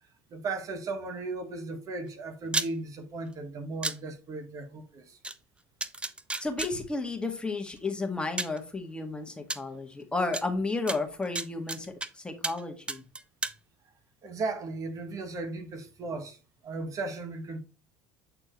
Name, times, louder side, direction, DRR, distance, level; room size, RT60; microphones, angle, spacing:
voice 1, 0.3-5.2 14.2-17.6, right 3 dB, 45° right, 1.6 m, -36 dB
sound 1, 2.5-2.7 3.8-4.0 5.2-5.3 5.8-6.7 7.8-7.9 8.4-8.6 9.5-9.6 10.3-10.4 10.9-12.1 12.4-12.6 12.9-13.6, right 2 dB, 15° right, 0.7 m, -32 dB
voice 2, 6.4-13.0, left 3 dB, 10° left, 1.8 m, -32 dB
8.6 x 4.4 x 3.1 m
hypercardioid pair, 80°, 8 cm